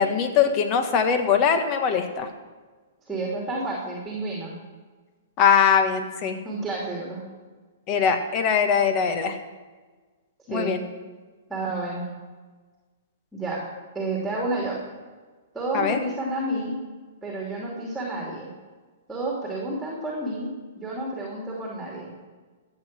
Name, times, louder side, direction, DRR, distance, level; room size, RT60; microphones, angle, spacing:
voice 1, 0.0-2.3 5.4-6.4 7.9-9.4 10.5-10.8 15.7-16.0, left 7 dB, 35° left, 7 dB, 1.6 m, -21 dB
voice 2, 3.1-4.5 6.4-7.2 10.5-10.7 11.5-12.1 13.3-13.6 13.9-14.8 15.5-16.7 17.2-18.5 19.1-22.1, right 2 dB, 5° right, -3 dB, 3.0 m, -30 dB
14.5 x 7.9 x 6.2 m, 1.4 s
hypercardioid pair, 125°, 0 cm